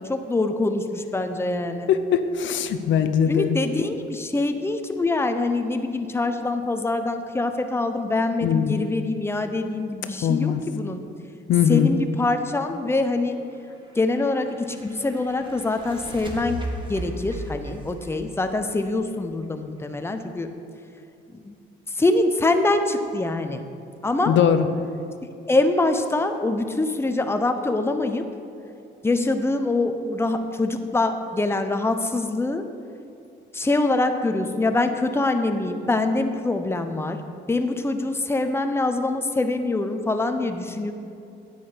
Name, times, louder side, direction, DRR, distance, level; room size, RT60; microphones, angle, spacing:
voice 1, 0.0-1.9 3.3-11.0 11.7-13.5 13.9-20.5 21.3-21.5 21.9-23.7 24.0-24.4 25.5-28.2 29.0-32.6 33.5-37.2 37.5-40.9, left 2 dB, 10° left, 7 dB, 0.7 m, -24 dB
voice 2, 1.9-3.5 8.4-8.7 10.2-10.6 11.5-11.9 24.3-24.7, left 8 dB, 70° left, 9 dB, 0.6 m, -20 dB
sound 1, 13.7-19.4, equal, 25° right, 1.6 m, -37 dB
9.8 x 8.0 x 5.1 m, 2.5 s
cardioid pair, 90°, 20 cm